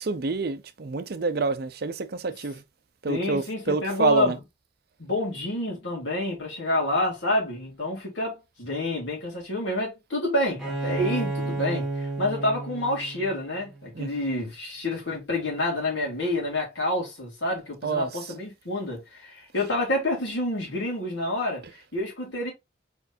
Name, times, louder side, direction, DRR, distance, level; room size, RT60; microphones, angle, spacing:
voice 1, 0.0-2.6 3.0-4.4 13.9-14.1 17.8-18.3 19.6-19.7 21.6-21.7, right 4 dB, 50° right, 0.5 m, -27 dB
voice 2, 3.1-4.4 5.0-21.6 21.9-22.5, left 1 dB, 70° left, 2.9 m, -28 dB
Bowed string instrument, 10.6-14.2, right 2 dB, 5° right, 1.5 m, -32 dB
4.5 x 4.5 x 2.6 m
head